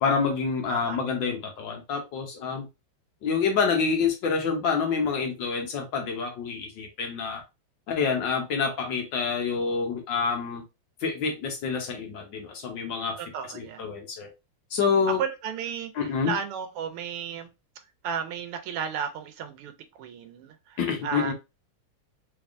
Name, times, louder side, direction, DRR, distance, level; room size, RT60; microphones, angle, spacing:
voice 1, 0.0-2.7 3.2-7.4 7.9-10.6 11.0-13.2 13.5-14.3 14.7-15.2 16.0-16.3 20.8-21.3, left 5 dB, 65° left, 1.4 m, -27 dB
voice 2, 0.7-1.3 13.2-13.9 15.1-17.5 18.0-21.3, right 7 dB, 85° right, 1.6 m, -34 dB
3.9 x 3.4 x 2.4 m
omnidirectional pair, 2.4 m